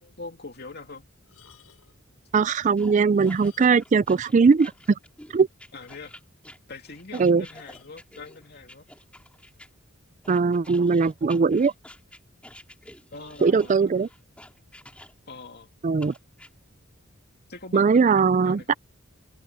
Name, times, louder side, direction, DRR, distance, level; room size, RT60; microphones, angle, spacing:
voice 1, 0.0-1.1 5.7-6.2 6.7-8.9 13.1-14.1 15.3-15.7 17.5-18.0 18.4-18.8, left 3 dB, 50° left, 2.7 m, -42 dB
sound 1, 1.2-2.1 3.0-4.0 4.3-4.4 4.9-5.0 5.3-5.4 5.7-6.4 7.5-8.0 8.9-9.1, left 7 dB, 90° left, 5.6 m, -57 dB
voice 2, 2.3-4.7 5.3-5.5 7.2-7.4 10.3-11.7 13.4-14.1 15.8-16.1 17.7-18.7, right 5 dB, 35° right, 0.3 m, -20 dB
sound 2, 2.8-9.7 10.2-15.4 16.0-16.5, left 1 dB, 5° left, 5.2 m, -49 dB
head